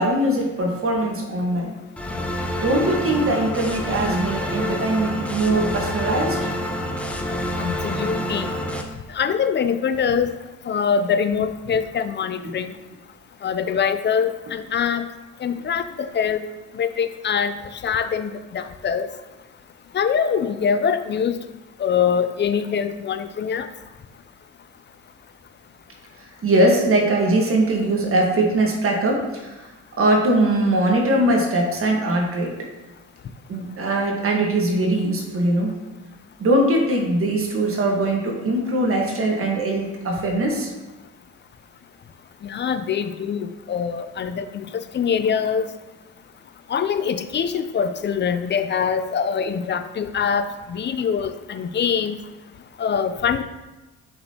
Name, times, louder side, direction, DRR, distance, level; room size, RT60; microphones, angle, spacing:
voice 1, 0.0-1.7 2.6-6.4 12.4-12.5 26.4-29.7 30.0-32.5 33.5-35.8 36.4-40.7, right 1 dB, 45° right, 0 dB, 1.4 m, -21 dB
sound 1, 2.0-8.8, left 1 dB, 5° left, 0.7 m, -27 dB
voice 2, 7.6-8.5 9.1-10.4 10.7-12.7 13.4-15.1 15.4-16.4 16.7-17.5 17.8-19.1 19.9-21.4 21.8-23.7 42.4-45.7 46.7-52.2 52.8-53.4, left 7 dB, 35° left, 11 dB, 0.5 m, -23 dB
6.9 x 5.2 x 2.9 m, 1.1 s
cardioid pair, 90°, 30 cm